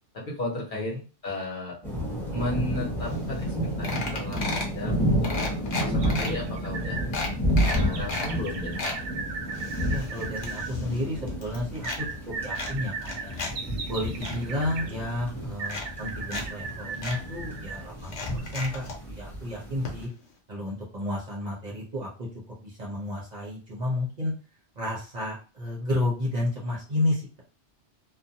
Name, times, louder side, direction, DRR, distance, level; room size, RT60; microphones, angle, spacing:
voice 1, 0.1-0.9 1.2-1.8 2.3-4.9 5.2-7.0 7.6-9.1, left 1 dB, 50° left, -3 dB, 0.9 m, -34 dB
sound 1, 1.8-20.0, equal, ahead, 0.9 m, -31 dB
sound 2, 3.1-3.2 3.4-3.6 3.8-4.8 5.2-6.3 6.7-6.8 7.1-8.3 8.6-9.0 9.5-11.0 11.3-12.0 12.5-13.5 13.9-14.4 15.2-15.3 15.6-16.4 16.7-16.8 17.0-17.2 18.0-19.0 19.8-19.9 20.2-20.3, left 3 dB, 75° left, 1.0 m, -34 dB
sound 3, 6.0-7.1 7.7-10.7 11.8-14.9 15.6-17.9 18.3-18.4, right 4 dB, 80° right, 0.9 m, -37 dB
voice 2, 9.9-12.0 12.4-13.3 13.9-20.1 20.5-22.3 22.6-24.3 24.8-27.4, left 1 dB, 40° right, -5 dB, 0.8 m, -31 dB
2.5 x 2.2 x 2.7 m, 0.35 s
omnidirectional pair, 1.2 m